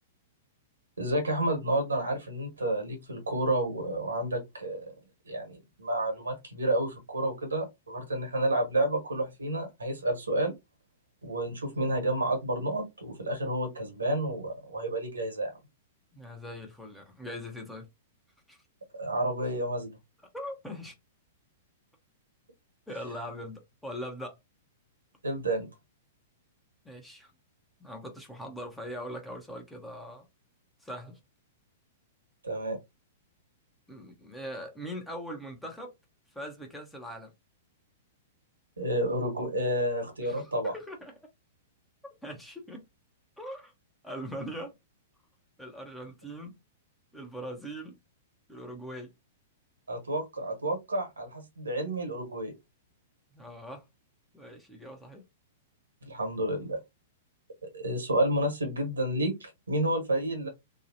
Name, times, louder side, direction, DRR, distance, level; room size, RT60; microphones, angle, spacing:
voice 1, 1.0-4.9 5.2-10.5 11.2-15.5 18.9-19.9 25.2-25.7 32.4-32.8 38.8-40.7 49.9-52.5 56.0-56.8 57.6-60.5, right 1 dB, 75° right, 1.4 m, -30 dB
voice 2, 16.1-17.9 18.5-18.6 20.3-20.9 22.9-24.4 26.8-27.3 27.8-30.2 30.8-31.2 33.9-35.9 36.3-37.3 40.2-41.1 42.2-42.8 43.4-43.7 44.0-44.7 45.6-46.6 47.1-48.0 48.5-49.1 53.3-53.9 54.3-55.2, equal, 5° left, 0.8 m, -41 dB
2.9 x 2.3 x 2.7 m
figure-of-eight pair, 105°, 0 cm